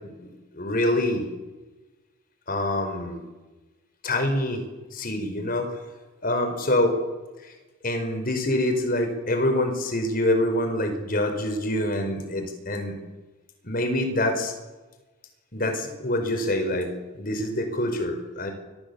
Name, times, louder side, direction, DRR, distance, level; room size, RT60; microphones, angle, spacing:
voice 1, 0.2-1.2 2.5-3.2 4.0-4.6 4.9-5.8 6.2-7.0 7.8-13.0 13.6-14.5 15.5-16.9 17.1-18.5, left 1 dB, 45° left, 6 dB, 5.2 m, -25 dB
29.0 x 24.0 x 7.2 m, 1.2 s
head